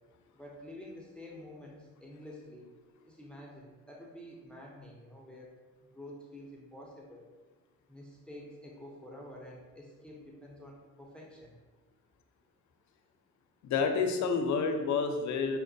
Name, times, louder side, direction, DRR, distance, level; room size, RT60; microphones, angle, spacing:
voice 1, 0.3-2.7 3.1-5.6 5.9-7.3 7.9-11.6, left 1 dB, 5° left, -2 dB, 0.6 m, -49 dB
voice 2, 13.6-15.6, left 5 dB, 70° left, 5 dB, 0.5 m, -29 dB
5.6 x 2.1 x 2.6 m, 1.3 s
cardioid pair, 90°, 30 cm